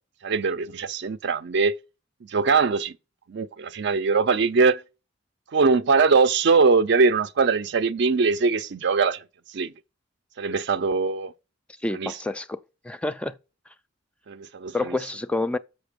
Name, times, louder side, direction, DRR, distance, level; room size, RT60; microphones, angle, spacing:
voice 1, 0.2-1.8 2.2-3.0 3.3-4.8 5.5-9.2 9.5-9.7 10.4-11.3 11.9-12.2 14.3-15.0, right 4 dB, 60° right, 0.5 m, -22 dB
voice 2, 11.8-12.6 12.8-13.4 14.7-15.6, left 2 dB, 5° left, 0.3 m, -28 dB
6.8 x 5.9 x 5.0 m
head